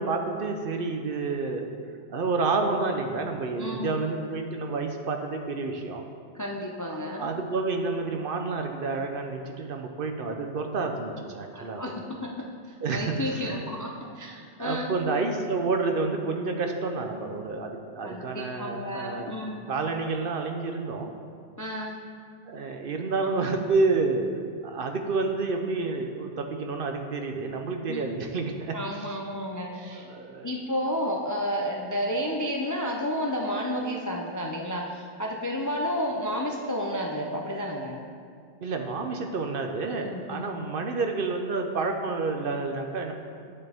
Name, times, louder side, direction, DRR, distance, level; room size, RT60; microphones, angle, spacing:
voice 1, 0.0-1.7 2.1-6.0 6.9-11.8 12.8-13.6 14.6-19.4 19.7-21.1 22.5-24.3 24.6-28.8 29.7-30.5 38.6-43.1, right 3 dB, 60° right, 4 dB, 0.8 m, -29 dB
voice 2, 3.6-4.0 6.3-7.3 11.5-15.0 18.0-19.7 21.6-22.0 27.9-28.0 28.7-30.0 30.4-38.0 40.0-40.5, equal, 30° left, 0 dB, 0.3 m, -31 dB
10.0 x 6.6 x 3.5 m, 2.2 s
omnidirectional pair, 1.2 m